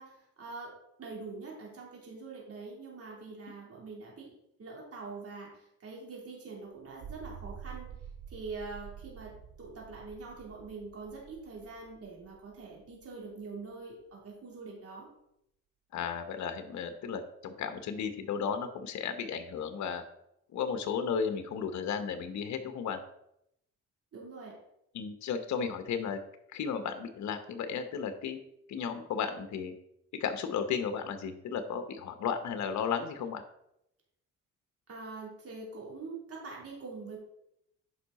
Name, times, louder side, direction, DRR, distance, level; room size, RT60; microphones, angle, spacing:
voice 1, 0.0-4.3 4.6-7.9 8.3-15.1 24.1-24.6 34.9-37.2, right 4 dB, 50° right, -3 dB, 3.4 m, -44 dB
sound 1, 6.8-13.3, right 7 dB, 80° right, 1.3 m, -48 dB
voice 2, 15.9-20.0 20.5-23.0 24.9-26.2 26.5-28.4 28.7-29.7 30.2-33.4, left 6 dB, 70° left, 8 dB, 1.0 m, -34 dB
9.7 x 5.6 x 4.2 m, 0.78 s
cardioid pair, 90°, 30 cm